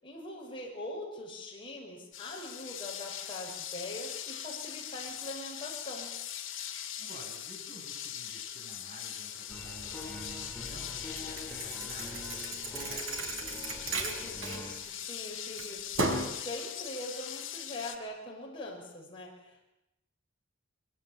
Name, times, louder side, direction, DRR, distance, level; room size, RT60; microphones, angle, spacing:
voice 1, 0.0-6.2 14.0-19.6, left 1 dB, 25° left, -3 dB, 5.7 m, -42 dB
sound 1, 2.1-18.0, left 10 dB, 60° left, 2.5 m, -41 dB
voice 2, 7.0-13.3, right 1 dB, 40° right, 0 dB, 7.7 m, -52 dB
sound 2, 9.5-14.8, left 1 dB, 5° left, 4.9 m, -45 dB
Thump thud, 11.2-15.2 15.6-16.4, right 2 dB, 65° right, 3.8 m, -35 dB
23.0 x 23.0 x 8.8 m, 0.90 s
head